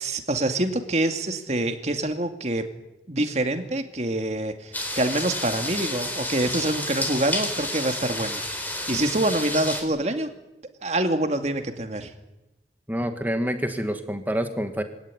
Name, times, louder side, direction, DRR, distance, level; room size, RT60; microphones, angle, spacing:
voice 1, 0.0-2.7 3.1-8.4 8.9-10.3 10.8-12.1, right 1 dB, 40° right, 6 dB, 2.4 m, -26 dB
sound 1, 4.7-9.8, left 1 dB, 10° left, 4.1 m, -30 dB
voice 2, 12.9-14.8, equal, 10° right, 7 dB, 2.0 m, -27 dB
24.5 x 17.5 x 9.9 m, 0.96 s
head